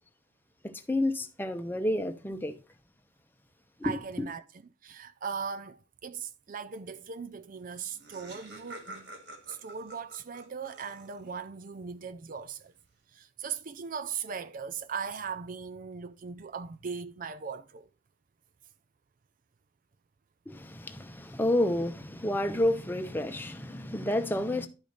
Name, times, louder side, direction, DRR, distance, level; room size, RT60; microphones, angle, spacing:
voice 1, 0.6-2.5 3.8-4.3 20.5-24.7, left 1 dB, 10° left, 0.8 m, -30 dB
voice 2, 3.8-4.4 4.8-9.1 9.5-12.7 13.1-17.9, right 6 dB, 45° right, 0.5 m, -39 dB
Laughter, 7.4-7.5 7.7-11.4, right 2 dB, 65° right, 2.1 m, -48 dB
11.5 x 5.1 x 4.0 m
head